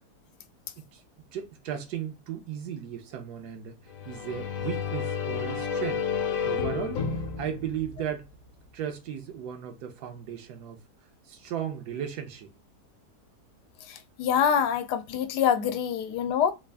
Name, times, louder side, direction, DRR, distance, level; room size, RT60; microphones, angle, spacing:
voice 1, 1.3-3.7 4.1-6.0 6.4-8.3 8.7-10.8 11.3-12.5, right 9 dB, 75° right, 1.2 m, -36 dB
sound 1, 3.9-8.6, left 6 dB, 65° left, 1.0 m, -31 dB
voice 2, 13.9-16.5, left 8 dB, 85° left, 1.2 m, -25 dB
3.5 x 2.4 x 3.4 m
omnidirectional pair, 1.7 m